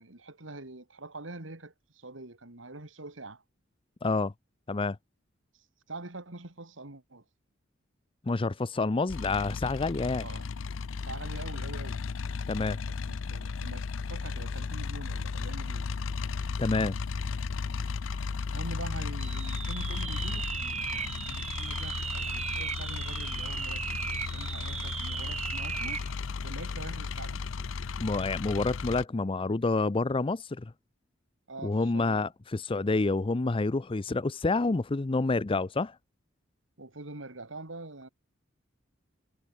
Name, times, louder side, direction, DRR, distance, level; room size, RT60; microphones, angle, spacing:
voice 1, 0.0-3.4 5.9-7.2 10.2-10.5 11.0-12.0 12.9-15.9 18.5-24.1 24.3-26.0 26.4-27.4 31.5-32.3 36.8-38.1, right 2 dB, 80° right, 2.7 m, -44 dB
voice 2, 4.0-4.3 4.7-5.0 8.3-10.2 12.5-12.8 16.6-16.9 28.0-30.7 31.6-36.0, left 3 dB, 25° left, 0.5 m, -28 dB
sound 1, 9.1-29.0, left 5 dB, 80° left, 0.5 m, -35 dB
sound 2, 19.2-26.1, right 7 dB, 35° right, 3.1 m, -36 dB
head